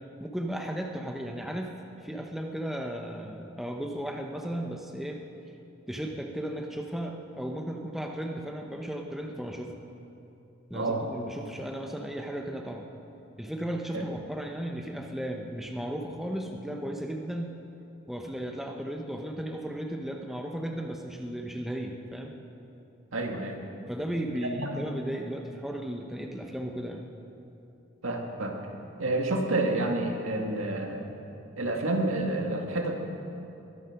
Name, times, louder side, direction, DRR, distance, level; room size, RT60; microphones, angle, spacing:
voice 1, 0.2-1.8 2.0-5.2 5.9-9.7 10.7-12.9 13.4-17.5 18.1-22.4 23.9-27.1, equal, ahead, 2 dB, 0.9 m, -35 dB
voice 2, 10.7-11.1 13.9-14.0 23.1-23.6 24.5-24.8 28.0-28.6 29.0-31.2 31.6-33.0, right 2 dB, 90° right, 2 dB, 1.9 m, -29 dB
22.0 x 10.0 x 6.0 m, 2.8 s
head